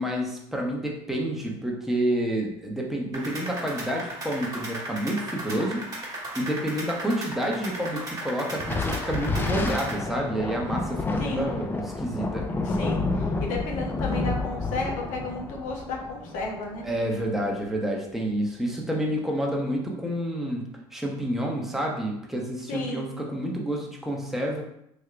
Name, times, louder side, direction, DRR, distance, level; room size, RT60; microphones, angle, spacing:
voice 1, 0.0-5.8 6.3-12.5 16.8-24.6, right 1 dB, ahead, -1 dB, 0.8 m, -29 dB
sound 1, 3.1-10.0, right 1 dB, 25° right, 1.3 m, -36 dB
Thunder, 8.6-17.4, left 3 dB, 15° left, 0.4 m, -30 dB
voice 2, 12.6-16.9 22.7-23.1, left 3 dB, 65° left, 0 dB, 0.7 m, -33 dB
3.3 x 2.7 x 2.4 m, 0.76 s
hypercardioid pair, 70°, 14 cm